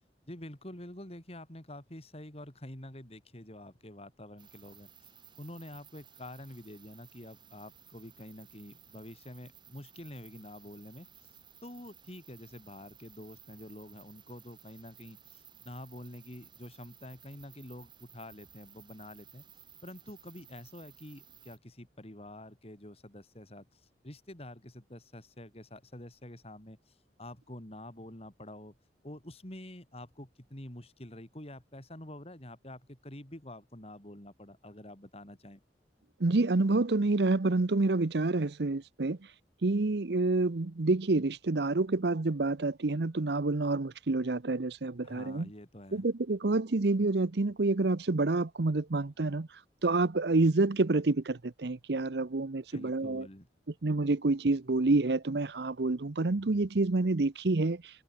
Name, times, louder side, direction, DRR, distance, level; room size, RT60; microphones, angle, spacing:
voice 1, 0.3-4.9 5.4-11.1 11.6-19.4 19.8-28.8 29.0-35.6 45.0-46.1 52.7-53.5, left 1 dB, 35° left, 3.7 m, -47 dB
sound 1, 4.4-21.6, right 8 dB, 25° right, 3.9 m, -57 dB
voice 2, 36.2-39.2 39.6-45.5 45.9-49.5 49.8-53.3 53.8-57.8, right 2 dB, 70° right, 0.8 m, -28 dB
head